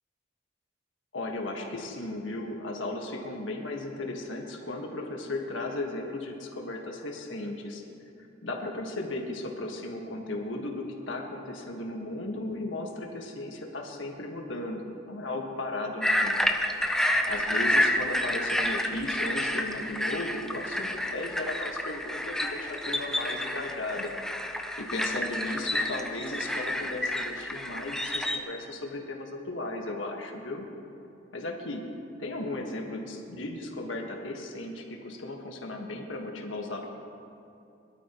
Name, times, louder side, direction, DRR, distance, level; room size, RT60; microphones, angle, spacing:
voice 1, 1.1-7.8 8.4-16.4 17.3-24.1 24.5-30.6 31.3-31.9 32.2-36.9, left 2 dB, 80° left, 1 dB, 1.6 m, -36 dB
sound 1, 16.0-28.4, left 1 dB, 5° left, 0.6 m, -29 dB
21.0 x 12.5 x 3.1 m, 2.7 s
head